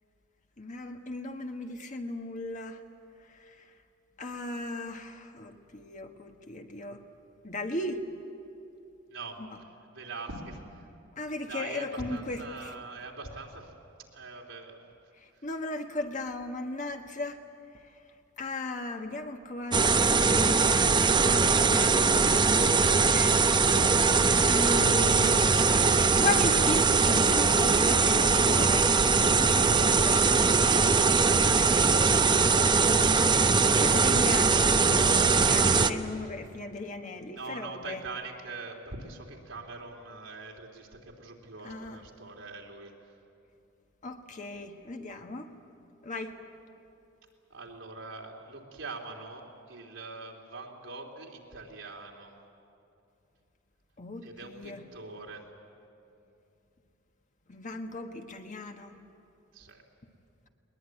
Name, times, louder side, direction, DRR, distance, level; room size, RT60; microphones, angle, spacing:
voice 1, 0.6-2.8 3.4-3.6 4.2-7.0 7.4-8.0 9.4-9.5 11.2-12.7 15.2-17.4 18.4-20.8 21.2-23.9 24.5-25.6 26.1-28.9 29.4-30.7 32.3-38.0 41.6-42.0 44.0-45.5 46.0-46.4 54.0-54.8 57.5-59.0, left 2 dB, 40° left, 5 dB, 1.5 m, -37 dB
voice 2, 9.1-9.4 9.9-10.6 11.5-13.7 14.1-15.0 30.4-31.9 37.3-42.9 47.5-52.3 54.2-55.4 59.5-59.8, right 3 dB, 85° right, 0 dB, 3.3 m, -42 dB
sound 1, 19.7-35.9, right 4 dB, 25° right, 0.7 m, -22 dB
21.0 x 20.5 x 9.5 m, 2.6 s
head